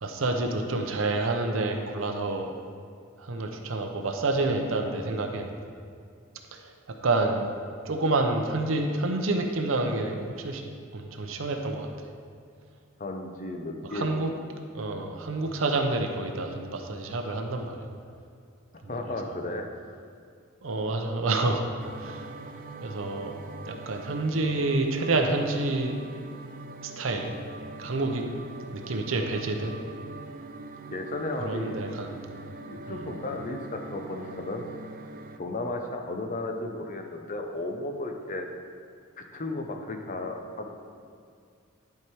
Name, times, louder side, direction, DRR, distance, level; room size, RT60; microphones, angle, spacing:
voice 1, 0.0-2.5 3.2-5.5 6.5-6.7 7.0-7.5 7.9-10.6 10.9-11.9 13.9-14.3 14.7-17.9 18.8-19.0 19.2-19.4 20.6-21.6 22.0-22.3 22.8-23.4 23.7-26.0 26.8-27.4 27.8-28.2 28.6-29.8 31.4-32.2, right 2 dB, 75° right, 4 dB, 0.7 m, -28 dB
voice 2, 13.0-14.1 18.9-19.7 30.9-31.8 32.7-34.6 35.4-38.5 39.2-40.7, left 2 dB, 40° left, 4 dB, 0.8 m, -34 dB
sound 1, 21.8-35.4, right 3 dB, 40° right, 0.4 m, -43 dB
11.0 x 4.7 x 4.7 m, 2.3 s
head